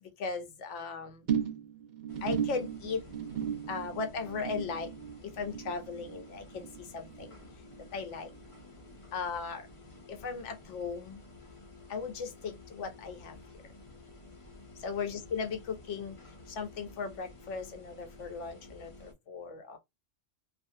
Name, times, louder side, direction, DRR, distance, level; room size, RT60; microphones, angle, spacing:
voice 1, 0.2-1.3 2.2-3.0 3.7-4.9 5.4-6.7 6.9-7.3 7.9-8.3 9.1-9.7 10.1-11.2 11.9-13.4 14.8-16.2 16.5-19.8, left 5 dB, 70° left, 1.0 m, -37 dB
sound 1, 1.3-7.9 8.1-8.6 8.9-9.0, right 8 dB, 55° right, 0.6 m, -37 dB
sound 2, 2.1-19.1, left 2 dB, 30° left, 0.8 m, -52 dB
2.5 x 2.4 x 2.6 m
omnidirectional pair, 1.3 m